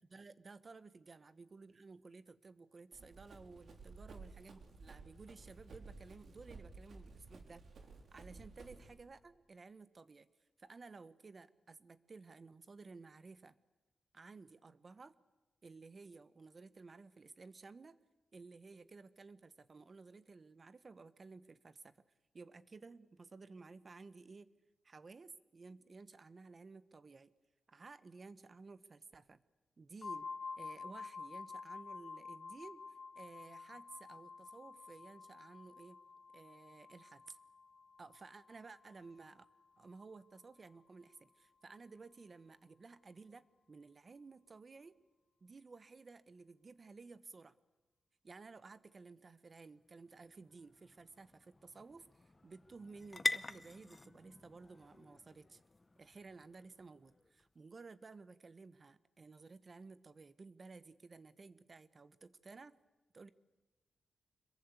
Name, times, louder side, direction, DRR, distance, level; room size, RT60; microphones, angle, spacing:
voice 1, 0.0-7.6 8.1-10.3 10.6-13.6 14.1-15.2 15.6-18.0 18.3-22.0 22.3-24.5 24.8-27.3 27.7-29.4 29.8-30.3 30.6-36.0 36.3-37.4 38.0-39.5 39.8-44.9 45.4-47.6 48.2-55.6 56.0-62.8 63.1-63.3, right 4 dB, 40° right, 14 dB, 1.1 m, -55 dB
Run, 2.9-8.9, right 3 dB, 65° right, 3.8 m, -55 dB
sound 1, 30.0-39.6, left 4 dB, 55° left, 1.1 m, -50 dB
sound 2, 49.7-57.5, left 2 dB, 20° left, 0.8 m, -45 dB
26.0 x 22.0 x 8.3 m, 1.2 s
wide cardioid pair, 100°, 0 cm